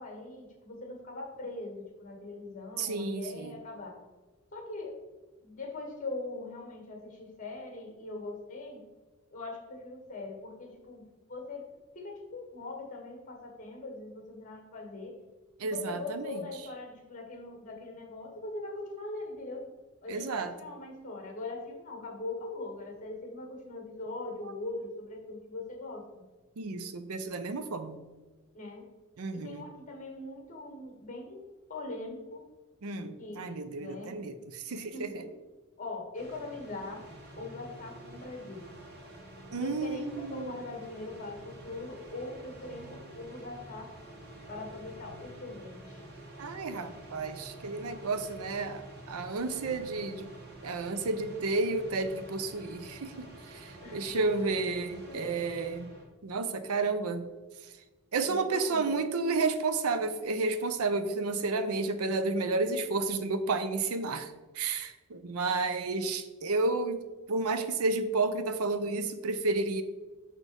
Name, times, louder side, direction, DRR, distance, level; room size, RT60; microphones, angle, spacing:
voice 1, 0.0-4.0 4.5-5.0 5.4-8.8 9.3-11.7 11.9-15.2 15.6-19.7 20.0-26.2 28.5-28.9 29.3-32.4 33.2-34.2 34.7-35.4 35.8-37.0 37.4-38.7 39.6-43.9 44.5-46.1 53.8-54.7 55.1-55.3 58.2-59.0, left 2 dB, 35° left, 1 dB, 1.7 m, -41 dB
voice 2, 2.8-3.6 15.6-16.4 20.1-20.5 24.4-24.5 26.6-28.0 29.2-29.6 32.8-35.1 39.5-40.5 46.4-50.3 50.6-55.9 56.2-57.2 58.1-69.8, right 3 dB, 80° right, 11 dB, 0.6 m, -31 dB
sound 1, 36.1-56.1, right 1 dB, 45° right, 1.3 m, -48 dB
6.1 x 4.1 x 5.2 m, 1.2 s
head